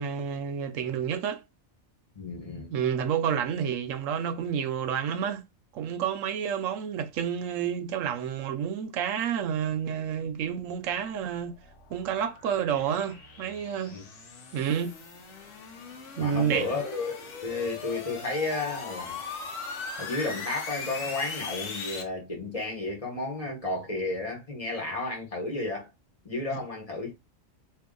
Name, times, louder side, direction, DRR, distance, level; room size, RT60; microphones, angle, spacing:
voice 1, 0.0-1.4 2.7-5.4 5.7-11.6 11.9-13.9 14.5-15.0 16.2-16.7 26.5-26.6, right 8 dB, 75° right, 0.9 m, -29 dB
voice 2, 2.1-2.7 13.9-14.0 16.2-19.2 20.0-25.9 26.2-27.1, left 2 dB, 30° left, 1.1 m, -32 dB
sound 1, 10.8-22.0, left 5 dB, 70° left, 1.1 m, -40 dB
2.7 x 2.6 x 3.7 m
omnidirectional pair, 1.4 m